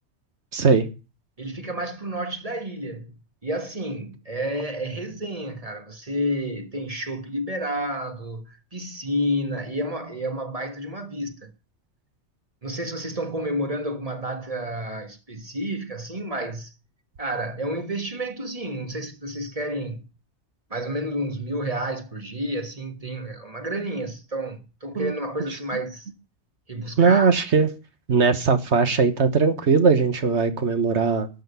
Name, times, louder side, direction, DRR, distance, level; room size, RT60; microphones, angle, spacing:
voice 1, 0.5-0.8 24.9-25.1 27.0-27.7 28.1-31.4, right 5 dB, 70° right, 1.6 m, -19 dB
voice 2, 1.4-11.5 12.6-16.7 17.2-20.0 20.7-26.1 26.7-27.3, equal, 30° right, 1.6 m, -30 dB
12.5 x 6.6 x 9.4 m
omnidirectional pair, 1.2 m